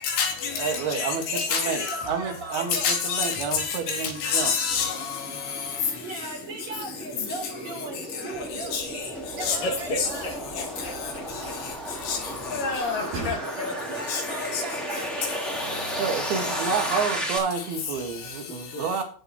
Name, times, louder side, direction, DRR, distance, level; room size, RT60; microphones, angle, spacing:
voice 1, 0.0-2.0 2.7-5.2 8.7-8.8 9.5-9.6 10.0-10.1 12.1-12.2 14.1-14.2 14.5-14.6, left 6 dB, 85° left, 4.2 m, -27 dB
voice 2, 0.6-4.5 16.0-19.0, right 6 dB, 80° right, 3.6 m, -29 dB
voice 3, 1.3-2.9 5.9-10.3 13.0-15.5, right 2 dB, 45° right, 4.8 m, -38 dB
sound 1, 4.3-17.4, equal, ahead, 2.3 m, -34 dB
sound 2, 8.3-13.4, right 3 dB, 65° right, 5.1 m, -43 dB
voice 4, 9.5-11.6 12.4-13.7 18.7-18.8, left 2 dB, 60° left, 3.7 m, -32 dB
17.0 x 7.3 x 3.0 m
omnidirectional pair, 4.4 m